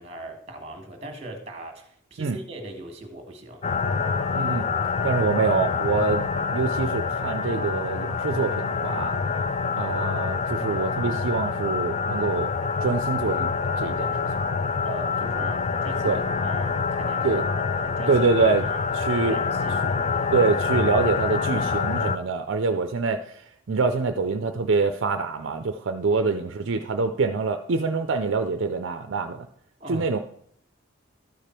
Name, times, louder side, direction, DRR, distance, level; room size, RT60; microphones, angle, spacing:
voice 1, 0.0-3.6 14.8-17.5 17.8-18.3 18.7-18.8 19.2-20.3 26.1-26.3 29.8-30.2, right 1 dB, 30° right, 4 dB, 1.5 m, -39 dB
sound 1, 3.6-22.2, left 5 dB, 35° left, 0.3 m, -26 dB
voice 2, 4.3-4.7 5.0-6.3 6.5-9.2 9.7-12.5 12.8-14.2 16.0-16.2 17.2-17.4 18.1-18.6 18.9-19.4 20.3-29.5 29.9-30.2, right 4 dB, 65° right, 7 dB, 0.5 m, -25 dB
12.5 x 5.1 x 4.4 m, 0.65 s
head